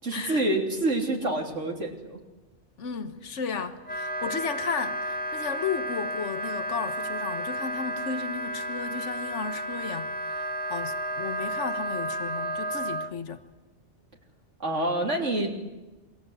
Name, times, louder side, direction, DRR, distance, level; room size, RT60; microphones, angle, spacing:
voice 1, 0.0-2.2 14.6-15.5, right 2 dB, 85° right, 3.9 m, -27 dB
voice 2, 2.8-13.4, left 6 dB, 75° left, 1.7 m, -34 dB
Wind instrument woodwind instrument, 3.8-13.1, right 1 dB, 10° left, 1.5 m, -32 dB
28.5 x 23.0 x 8.2 m
omnidirectional pair, 1.2 m